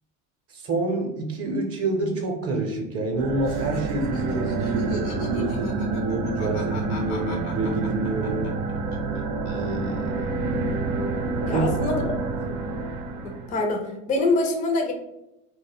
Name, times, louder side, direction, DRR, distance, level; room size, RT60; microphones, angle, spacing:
voice 1, 0.5-8.5 9.5-10.1 11.5-11.6, right 2 dB, 35° right, 2 dB, 0.6 m, -28 dB
sound 1, 3.1-13.6, right 3 dB, 85° right, 0.6 m, -28 dB
Laughter, 3.4-9.2 9.5-10.2, left 4 dB, 80° left, 0.7 m, -42 dB
voice 2, 11.4-12.1 13.2-14.9, left 2 dB, 20° left, 2 dB, 0.4 m, -25 dB
2.2 x 2.0 x 3.3 m, 0.87 s
hypercardioid pair, 80°, 42 cm